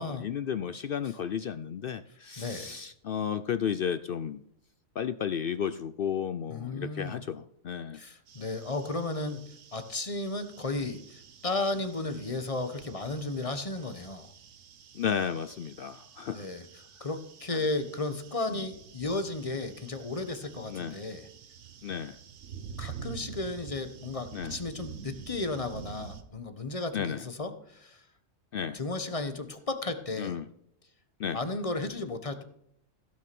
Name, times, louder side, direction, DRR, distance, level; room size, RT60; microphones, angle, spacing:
voice 1, 0.0-4.4 5.0-8.0 14.9-16.5 17.5-17.6 20.7-21.0 21.8-22.2 24.3-24.6 26.9-27.2 28.5-28.8 30.2-30.4 31.2-31.4, left 8 dB, 60° left, 13 dB, 0.6 m, -33 dB
voice 2, 2.4-2.7 6.5-7.2 7.9-14.3 16.3-16.7 17.0-21.3 22.8-28.0 28.7-30.4 31.3-32.4, left 2 dB, 30° left, 9 dB, 1.1 m, -34 dB
sound 1, 8.3-26.2, right 8 dB, 85° right, 1.4 m, -48 dB
16.0 x 6.4 x 6.0 m, 0.73 s
omnidirectional pair, 1.3 m